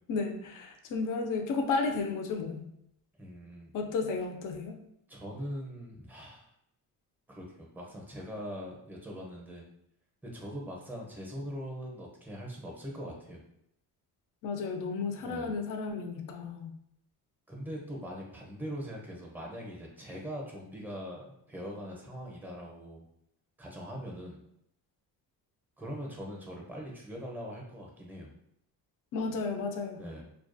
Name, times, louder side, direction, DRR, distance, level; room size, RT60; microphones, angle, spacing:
voice 1, 0.1-2.6 3.7-4.8 14.4-16.7 29.1-30.0, left 4 dB, 55° left, 4 dB, 0.5 m, -33 dB
voice 2, 3.2-3.7 5.1-6.5 7.3-9.7 10.2-13.4 15.2-15.5 17.5-23.0 23.6-24.4 25.8-28.3 30.0-30.2, equal, 5° right, -1 dB, 0.6 m, -41 dB
2.3 x 2.3 x 2.5 m, 0.76 s
cardioid pair, 90°, 40 cm